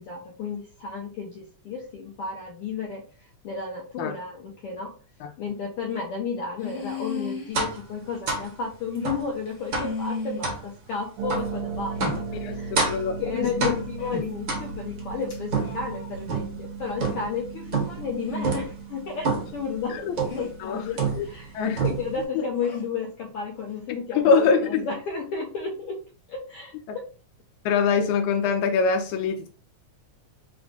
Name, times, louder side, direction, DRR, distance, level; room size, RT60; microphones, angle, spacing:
voice 1, 0.0-3.0 3.4-4.9 5.4-12.7 13.2-21.5 21.8-26.0 26.3-27.0, left 5 dB, 70° left, 1.4 m, -33 dB
sound 1, 5.5-5.6 6.6-7.5 8.3-8.4 8.9-9.0 9.4-10.4 11.4-11.5 12.0-12.2 14.0-14.2 15.3-16.1 18.2-18.7 20.3-20.5 22.5-22.8, left 4 dB, 40° left, 1.1 m, -34 dB
sound 2, 7.5-7.8 8.3-8.5 9.0-9.3 9.7-10.0 10.4-10.6 11.3-11.5 12.0-12.3 12.8-13.1 13.6-14.0 14.5-15.0 15.5-16.6 17.0-17.4 17.7-18.1 18.4-18.7 19.2-19.6 20.2-20.5 21.0-21.5 21.8-22.2, right 4 dB, 50° right, 1.4 m, -28 dB
Harp, 11.2-21.7, right 5 dB, 75° right, 1.9 m, -37 dB
voice 2, 12.9-13.8 19.9-20.1 20.6-20.8 21.1-21.3 21.5-21.8 22.4-22.5 24.1-24.8 26.9-27.0 27.7-29.5, left 5 dB, 90° left, 2.0 m, -23 dB
4.8 x 2.3 x 3.9 m
omnidirectional pair, 3.3 m